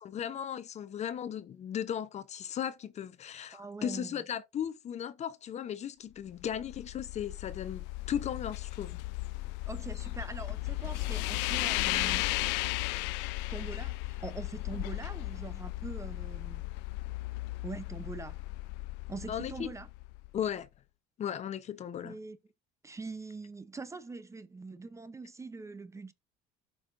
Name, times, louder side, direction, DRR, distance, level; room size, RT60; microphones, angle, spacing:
voice 1, 0.0-9.0 19.3-19.7 20.3-20.7 21.2-22.2, left 9 dB, 40° left, 0.7 m, -36 dB
voice 2, 3.5-4.1 9.7-12.3 13.5-16.6 17.6-18.4 19.1-19.9 22.0-22.4 22.8-26.1, right 3 dB, 15° right, 0.7 m, -43 dB
sound 1, 6.3-20.5, left 20 dB, 70° left, 0.4 m, -35 dB
12.5 x 5.5 x 2.5 m
supercardioid pair, 110°, 18 cm